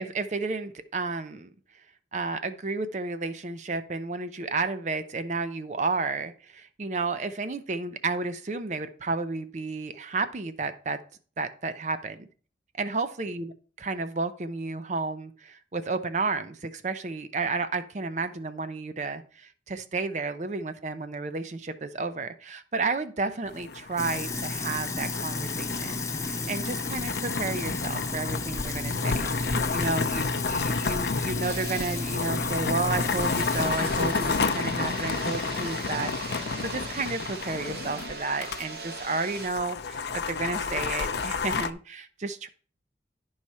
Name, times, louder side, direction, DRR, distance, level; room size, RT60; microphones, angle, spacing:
voice 1, 0.0-1.5 2.1-11.0 11.4-12.2 12.8-42.5, right 3 dB, 40° right, 11 dB, 0.5 m, -32 dB
sound 1, 23.5-38.6 38.9-39.0 39.3-41.7, left 4 dB, 70° left, 0.5 m, -31 dB
Sink (filling or washing), 24.0-33.7, left 3 dB, 15° left, 0.6 m, -32 dB
sound 2, 31.4-39.5, right 3 dB, 60° right, 1.5 m, -39 dB
11.0 x 4.8 x 4.2 m, 0.41 s
head